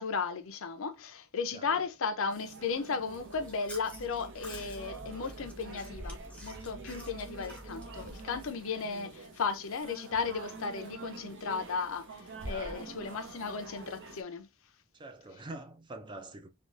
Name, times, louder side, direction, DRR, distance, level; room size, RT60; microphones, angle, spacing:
voice 1, 0.0-14.5, left 5 dB, 65° left, 0.6 m, -35 dB
sound 1, 2.3-14.2, right 3 dB, 55° right, 0.7 m, -46 dB
Chewing mastication, 3.2-8.5, left 1 dB, 5° left, 0.8 m, -48 dB
voice 2, 12.5-12.9 14.9-16.5, right 2 dB, 20° right, 0.4 m, -45 dB
3.6 x 2.4 x 2.5 m
head